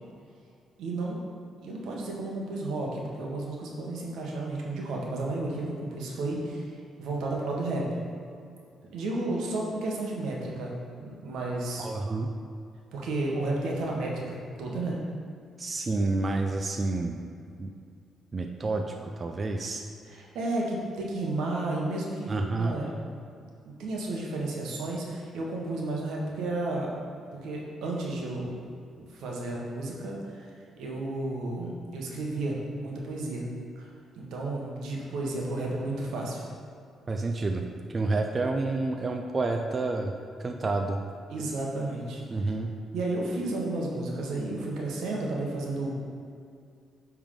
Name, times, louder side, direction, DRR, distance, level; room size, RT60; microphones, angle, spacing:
voice 1, 0.8-1.2 1.6-7.9 8.9-10.7 11.0-11.9 12.9-15.0 20.0-22.9 23.6-27.0 27.4-28.5 29.0-30.5 30.8-33.4 33.8-33.9 34.1-36.4 41.3-42.5 42.9-45.9, right 2 dB, 80° right, -2 dB, 1.2 m, -32 dB
voice 2, 11.8-12.3 15.6-17.2 17.6-17.7 18.3-19.8 22.3-22.8 37.1-40.1 40.4-41.0 42.3-42.7, right 3 dB, 35° right, 3 dB, 0.4 m, -29 dB
9.9 x 3.6 x 3.7 m, 2.4 s
cardioid pair, 90°, 0 cm